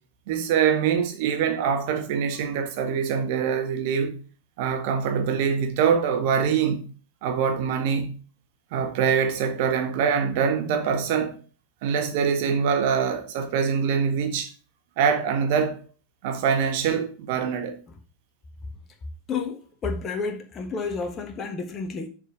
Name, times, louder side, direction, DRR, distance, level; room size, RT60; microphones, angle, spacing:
voice 1, 0.3-4.2 4.6-6.8 7.2-8.1 8.7-11.4 11.8-14.5 15.0-15.8 16.2-17.7, right 7 dB, 50° right, 1.5 m, -24 dB
voice 2, 19.3-22.1, left 4 dB, 25° left, 1.3 m, -30 dB
6.9 x 4.4 x 6.7 m
figure-of-eight pair, 90°, 0 cm